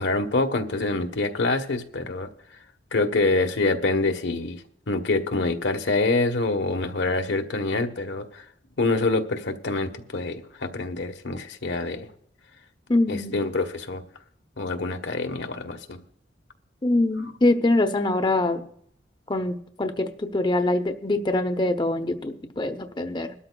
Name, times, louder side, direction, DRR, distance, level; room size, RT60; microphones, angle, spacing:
voice 1, 0.0-2.3 2.9-8.4 8.8-12.1 13.1-14.0 14.6-16.0, left 3 dB, 85° left, 5 dB, 1.1 m, -26 dB
voice 2, 12.9-13.4 16.8-18.6 19.3-23.3, left 2 dB, 25° left, 6 dB, 0.7 m, -24 dB
21.5 x 12.5 x 2.3 m, 0.65 s
head